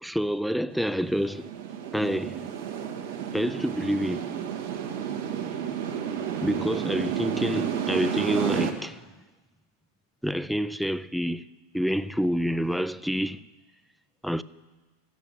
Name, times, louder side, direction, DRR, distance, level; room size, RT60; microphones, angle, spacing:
voice 1, 0.0-1.5 1.9-2.5 3.3-4.3 6.4-9.1 10.2-11.4 11.7-13.4 14.2-14.4, equal, ahead, 0.3 m, -28 dB
sound 1, 0.7-8.7, right 8 dB, 75° right, 1.7 m, -31 dB
13.0 x 8.2 x 8.8 m
supercardioid pair, 145°, 0 cm